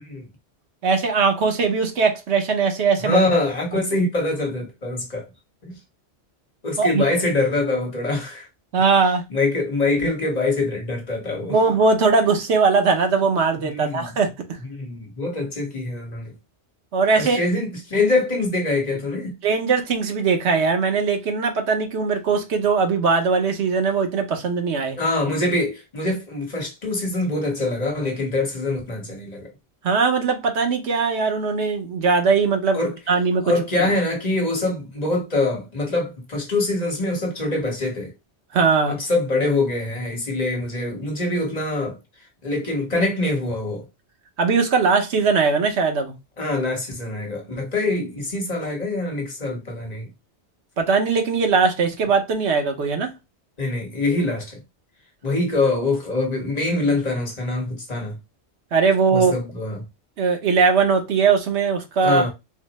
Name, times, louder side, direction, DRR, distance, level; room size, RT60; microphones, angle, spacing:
voice 1, 0.8-3.2 6.8-7.0 8.7-9.2 11.5-14.3 16.9-17.4 19.4-25.0 29.8-32.8 33.1-33.4 33.8-33.9 38.5-39.0 44.4-46.1 50.8-53.1 58.7-59.3 60.2-62.2, right 4 dB, 80° right, 1.1 m, -20 dB
voice 2, 3.0-5.3 5.6-5.8 6.6-8.5 9.3-11.6 13.6-14.1 14.7-16.3 17.2-19.3 25.0-29.5 32.7-32.9 33.4-38.1 38.9-42.0 42.4-43.8 46.4-50.1 53.6-54.6 55.2-58.2 59.1-59.8 62.0-62.3, left 2 dB, 40° left, 1.1 m, -24 dB
3.9 x 2.1 x 4.1 m
omnidirectional pair, 1.1 m